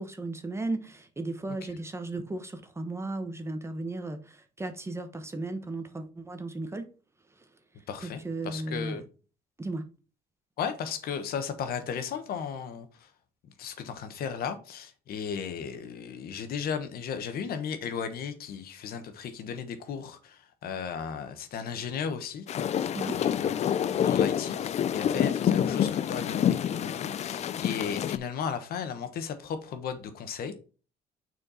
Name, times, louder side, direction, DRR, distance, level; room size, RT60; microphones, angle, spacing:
voice 1, 0.0-6.9 8.0-9.0 9.6-9.9 22.9-23.2 25.1-25.3, right 2 dB, 15° right, 1.0 m, -35 dB
voice 2, 7.9-9.0 10.6-13.1 13.4-30.5, left 7 dB, 65° left, 1.3 m, -35 dB
sound 1, 22.5-28.2, left 9 dB, 40° left, 0.4 m, -27 dB
6.4 x 4.5 x 4.2 m
cardioid pair, 110°, 17 cm